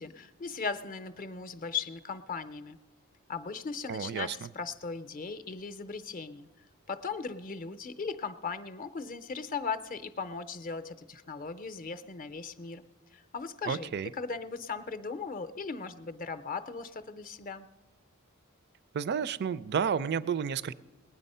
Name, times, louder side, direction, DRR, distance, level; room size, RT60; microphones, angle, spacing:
voice 1, 0.0-2.8 3.3-6.5 6.9-12.8 13.1-17.7, left 5 dB, 40° left, 10 dB, 0.6 m, -38 dB
voice 2, 3.9-4.5 13.7-14.1 18.9-20.7, right 7 dB, 50° right, 18 dB, 0.4 m, -31 dB
19.5 x 9.6 x 5.5 m, 1.2 s
head